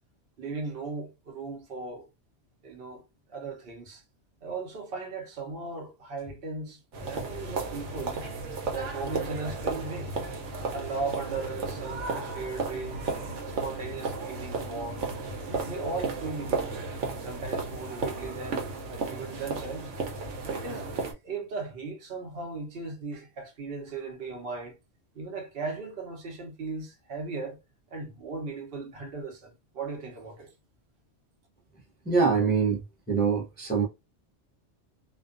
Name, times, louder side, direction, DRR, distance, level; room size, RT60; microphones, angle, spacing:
voice 1, 0.4-2.1 2.6-3.0 3.3-4.0 4.4-8.3 8.7-10.1 10.7-13.0 13.4-15.0 15.6-16.7 17.2-20.0 20.5-20.9 21.2-24.8 25.1-27.6 27.9-30.5, right 3 dB, 55° right, 1.0 m, -37 dB
sound 1, 6.9-21.1, right 4 dB, 90° right, 1.1 m, -34 dB
voice 2, 32.1-32.8 33.1-33.8, right 5 dB, 15° left, 0.4 m, -24 dB
2.4 x 2.3 x 2.4 m
omnidirectional pair, 1.2 m